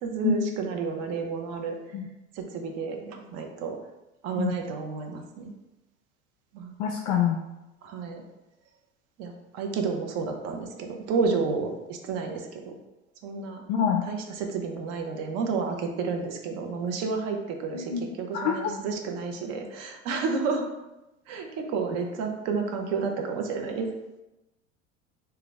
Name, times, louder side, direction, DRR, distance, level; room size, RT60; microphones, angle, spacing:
voice 1, 0.0-1.8 2.3-3.8 4.2-5.5 6.5-6.7 7.8-8.2 9.2-12.7 13.2-13.6 14.1-20.7 21.3-23.9, right 5 dB, 40° right, 3 dB, 0.7 m, -31 dB
voice 2, 6.8-7.4 13.7-14.1 17.7-18.0 18.3-18.7, left 8 dB, 45° left, 2 dB, 0.4 m, -25 dB
3.8 x 2.3 x 3.3 m, 0.99 s
figure-of-eight pair, 75°, 38 cm